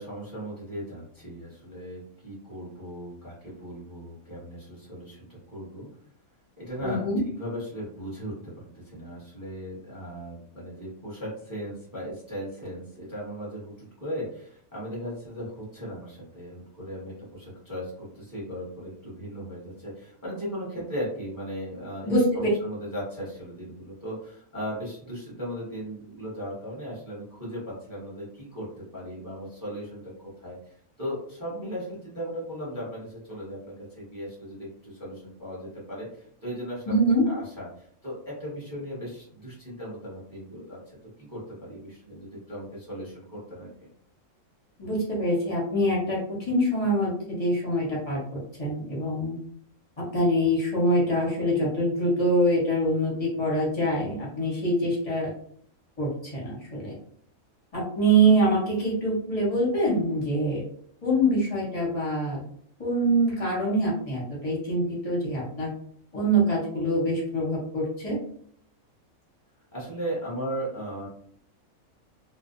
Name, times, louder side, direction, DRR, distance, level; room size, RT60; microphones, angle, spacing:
voice 1, 0.0-5.9 6.6-28.7 28.9-40.8 41.2-43.7 69.7-71.1, equal, 15° right, -7 dB, 0.7 m, -37 dB
voice 2, 6.8-7.2 22.0-22.5 36.9-37.3 44.8-49.4 50.0-55.3 56.0-56.9 57.7-60.6 61.0-62.4 62.8-65.7 66.1-68.2, right 1 dB, 35° left, -6 dB, 0.7 m, -25 dB
2.6 x 2.0 x 2.5 m, 0.63 s
omnidirectional pair, 1.5 m